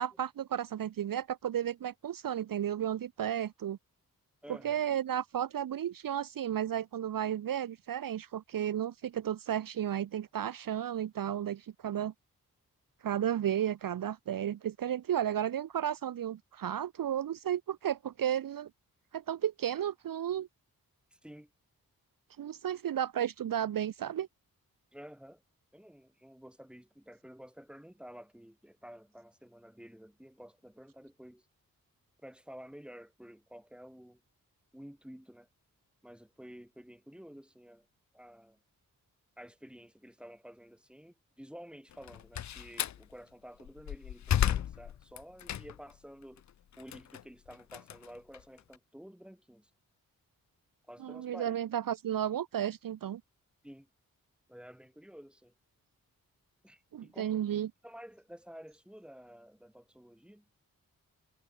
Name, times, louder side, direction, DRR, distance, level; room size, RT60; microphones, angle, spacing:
voice 1, 0.0-3.8 4.5-12.1 13.0-18.7 19.1-20.5 22.4-24.3 51.0-53.2 56.9-57.7, right 10 dB, 65° right, 0.7 m, -33 dB
voice 2, 4.4-4.8 21.1-21.5 24.9-25.4 25.7-31.5 32.2-34.2 34.7-35.5 36.0-37.9 38.1-38.6 39.4-46.4 46.8-49.7 50.9-51.6 53.6-53.9 54.5-55.5 56.6-60.5, equal, 5° right, 2.9 m, -51 dB
Slam, 41.9-43.0 43.6-46.0 46.4-48.8, left 10 dB, 50° left, 0.5 m, -33 dB
cardioid pair, 45°, 36 cm